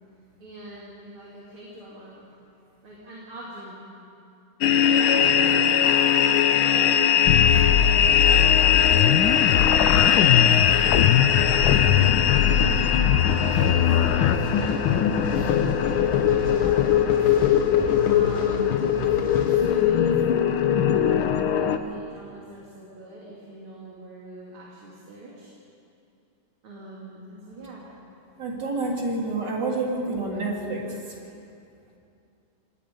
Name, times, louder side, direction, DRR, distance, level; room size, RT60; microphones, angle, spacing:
voice 1, 0.4-2.2 2.8-3.8 6.3-6.6 7.3-8.4 8.7-15.0 15.7-19.0 19.5-25.5 26.6-27.9, right 1 dB, 90° right, -5 dB, 3.8 m, -43 dB
sound 1, 4.6-21.8, left 9 dB, 90° left, 1.7 m, -21 dB
sound 2, 7.3-14.4, left 10 dB, 70° left, 0.9 m, -22 dB
sound 3, 11.5-20.4, equal, 20° left, 5.9 m, -35 dB
voice 2, 28.4-31.0, right 2 dB, 55° right, -1 dB, 3.7 m, -28 dB
26.0 x 19.5 x 5.5 m, 2.6 s
omnidirectional pair, 2.2 m